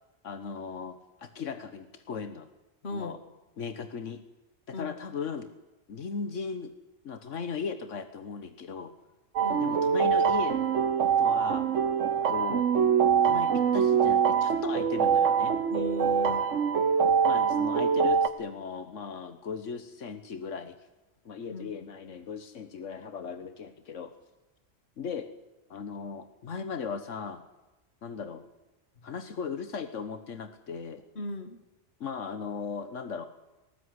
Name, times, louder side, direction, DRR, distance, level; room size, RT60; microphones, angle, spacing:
voice 1, 0.2-2.5 2.9-3.2 3.6-4.2 4.7-5.5 5.9-6.8 7.0-8.9 9.6-10.7 11.2-11.7 12.3-12.7 13.2-15.5 17.2-20.8 21.2-24.1 25.0-25.3 25.7-27.4 28.0-28.4 29.0-31.0 32.0-33.2, left 5 dB, 85° left, 10 dB, 1.5 m, -37 dB
voice 2, 2.8-3.2 4.7-5.0 9.4-9.8 15.7-16.4 21.5-21.7 31.2-31.6, left 2 dB, 60° left, 9 dB, 2.3 m, -37 dB
sound 1, 9.4-18.3, right 7 dB, 85° right, 1.6 m, -24 dB
19.5 x 18.5 x 9.7 m, 1.0 s
omnidirectional pair, 1.2 m